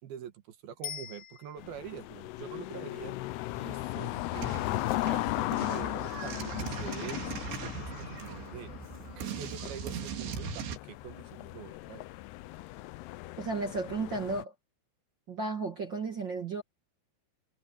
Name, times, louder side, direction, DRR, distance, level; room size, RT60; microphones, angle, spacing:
voice 1, 0.0-3.1 3.5-8.7 9.1-12.0, right 9 dB, 70° right, 3.2 m, -45 dB
Bicycle bell, 0.8-2.0 11.0-11.1, left 10 dB, 55° left, 3.6 m, -43 dB
sound 1, 1.6-14.4, left 18 dB, 80° left, 2.7 m, -37 dB
sound 2, 4.3-10.8, right 7 dB, 90° right, 4.5 m, -40 dB
voice 2, 13.4-14.5 15.3-16.6, right 3 dB, 45° right, 1.6 m, -33 dB
omnidirectional pair, 4.8 m